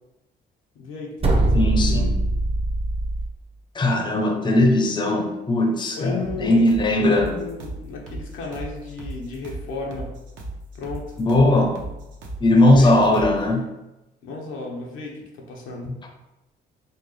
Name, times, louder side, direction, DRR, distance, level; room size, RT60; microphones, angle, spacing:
voice 1, 0.7-2.1 5.9-6.6 6.9-10.1 10.7-11.2 12.7-13.0 14.2-16.0, left 3 dB, 90° left, -1 dB, 0.9 m, -34 dB
sound 1, 1.2-3.3, right 2 dB, 30° right, 0.7 m, -21 dB
voice 2, 1.5-2.1 3.7-7.3 11.2-11.8 12.4-13.7 15.9-16.0, left 1 dB, 25° left, 3 dB, 0.6 m, -19 dB
sound 2, 6.2-13.4, right 1 dB, 70° right, 0.8 m, -36 dB
4.4 x 2.3 x 3.1 m, 0.97 s
cardioid pair, 90°, 20 cm